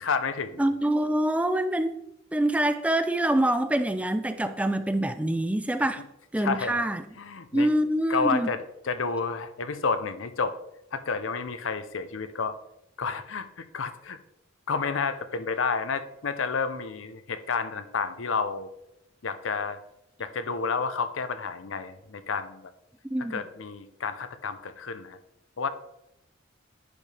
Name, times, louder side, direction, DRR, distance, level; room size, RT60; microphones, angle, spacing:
voice 1, 0.0-0.7 6.4-6.8 7.2-7.7 8.1-10.5 10.9-12.5 13.0-14.2 14.7-18.7 19.2-19.8 20.2-22.6 23.3-25.2 25.6-25.7, left 5 dB, 85° left, 0.7 m, -30 dB
voice 2, 0.6-1.9 2.3-6.0 6.3-7.0 7.5-8.5 23.1-23.4, right 1 dB, 5° right, 0.3 m, -25 dB
10.5 x 5.3 x 3.3 m
head